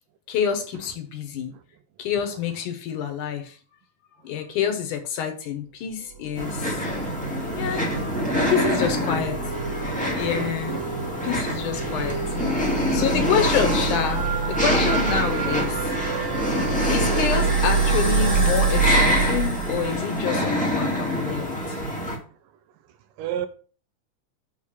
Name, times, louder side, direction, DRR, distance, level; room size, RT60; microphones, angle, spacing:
voice 1, 0.3-1.5 2.0-3.6 4.2-6.8 7.5-7.9 8.5-9.4 10.1-10.8 11.2-12.2 12.6-16.0 16.9-21.8, left 8 dB, 70° left, 2.4 m, -27 dB
sound 1, 6.3-22.2, equal, 5° left, 1.0 m, -26 dB
sound 2, 6.3-20.4, right 4 dB, 25° right, 2.5 m, -27 dB
voice 2, 7.9-8.8 10.7-10.8 23.2-23.5, right 9 dB, 80° right, 2.3 m, -31 dB
6.7 x 6.6 x 5.6 m
omnidirectional pair, 4.0 m